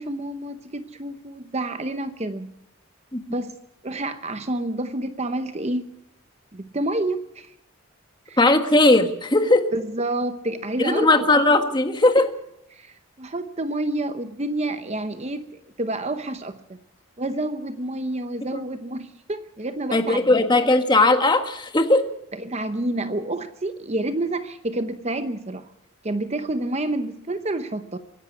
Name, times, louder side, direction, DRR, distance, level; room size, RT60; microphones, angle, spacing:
voice 1, 0.0-2.5 3.3-3.6 3.8-5.9 6.5-7.5 8.3-8.4 9.7-11.3 12.2-12.3 12.7-16.8 17.2-20.4 22.3-25.7 26.0-28.0, right 1 dB, 30° right, 10 dB, 0.8 m, -29 dB
voice 2, 8.4-9.7 10.8-12.2 19.9-22.0, left 2 dB, 20° left, 7 dB, 1.5 m, -18 dB
24.5 x 11.0 x 9.6 m, 0.82 s
head